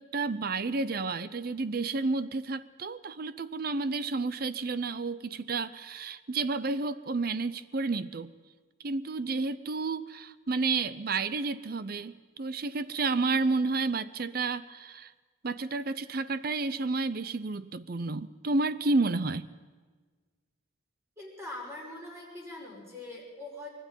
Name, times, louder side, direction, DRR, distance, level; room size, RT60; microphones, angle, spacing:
voice 1, 0.0-8.3 8.8-15.1 15.4-19.5, right 3 dB, 50° right, 15 dB, 0.6 m, -31 dB
voice 2, 21.2-23.7, left 2 dB, 15° right, -2 dB, 5.8 m, -42 dB
24.5 x 13.0 x 9.0 m, 1.4 s
head